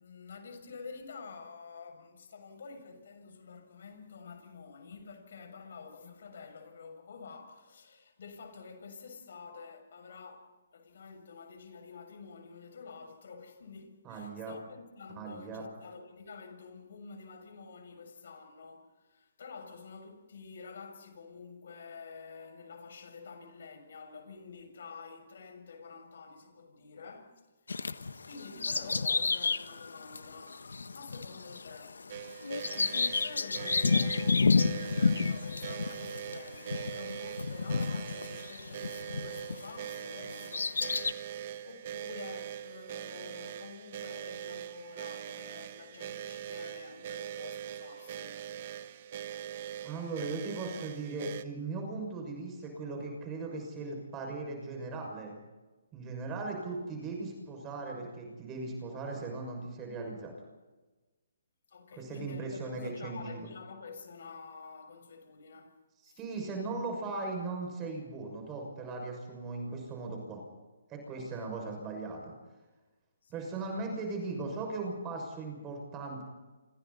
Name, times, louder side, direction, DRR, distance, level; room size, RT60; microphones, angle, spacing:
voice 1, 0.0-32.2 32.8-48.5 61.7-66.2 71.2-71.5 73.2-73.6, left 5 dB, 65° left, 6.9 m, -49 dB
voice 2, 14.0-14.5 15.2-15.6 49.8-55.3 55.9-60.3 62.0-63.4 66.0-70.4 70.9-72.3 73.3-76.2, right 3 dB, 20° right, 6.3 m, -38 dB
Bird vocalization bird call bird song, 27.7-39.8 40.2-41.1, left 4 dB, 85° left, 1.3 m, -31 dB
sound 1, 32.1-51.4, right 10 dB, 45° right, 1.3 m, -42 dB
29.0 x 26.5 x 4.2 m
hypercardioid pair, 150°, 0 cm